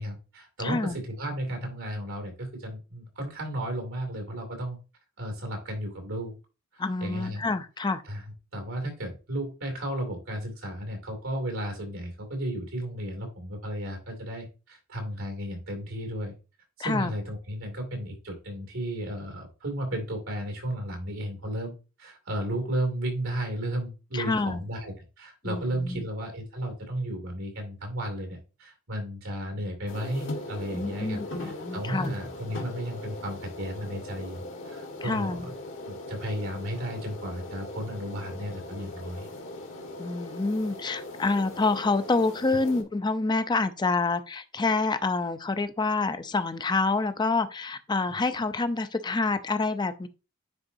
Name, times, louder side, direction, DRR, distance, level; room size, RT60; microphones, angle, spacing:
voice 1, 0.0-4.8 5.2-6.4 6.7-7.4 8.1-8.2 8.5-16.3 16.8-21.7 22.0-35.5 35.8-39.3 48.1-48.2, right 1 dB, 90° right, 2.6 m, -34 dB
voice 2, 0.6-1.0 6.8-8.0 16.8-17.1 24.1-24.7 25.4-26.0 30.7-32.1 35.0-35.5 40.0-50.1, left 3 dB, 20° left, 0.5 m, -27 dB
sound 1, 29.9-42.8, left 2 dB, 70° left, 1.5 m, -40 dB
9.7 x 3.9 x 2.6 m
head